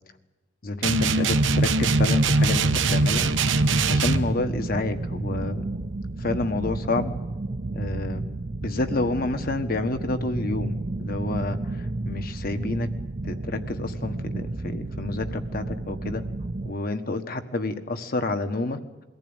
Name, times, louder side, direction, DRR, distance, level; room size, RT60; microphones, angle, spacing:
voice 1, 0.6-3.3 3.9-5.6 6.2-7.1 7.7-8.3 8.6-12.9 13.2-16.2 16.6-18.8, left 2 dB, 50° left, 8 dB, 1.4 m, -29 dB
sound 1, 0.8-4.3, right 3 dB, 85° right, 1.0 m, -21 dB
sound 2, 1.3-16.7, right 2 dB, 40° right, 0.7 m, -32 dB
23.0 x 15.0 x 8.9 m, 1.1 s
head